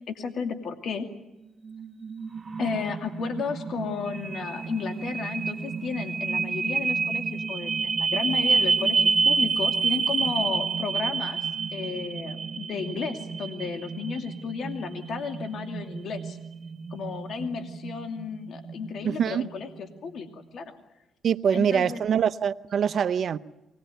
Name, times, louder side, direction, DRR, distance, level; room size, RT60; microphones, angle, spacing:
voice 1, 0.1-1.1 2.6-11.4 11.7-16.4 16.9-20.7 21.5-22.0, left 5 dB, 65° left, 2.5 m, -33 dB
sound 1, 1.7-19.7, right 5 dB, 35° right, 1.6 m, -29 dB
voice 2, 19.0-19.5 21.2-23.4, right 8 dB, 55° right, 0.8 m, -24 dB
24.0 x 20.0 x 9.2 m
cardioid pair, 90°, 0 cm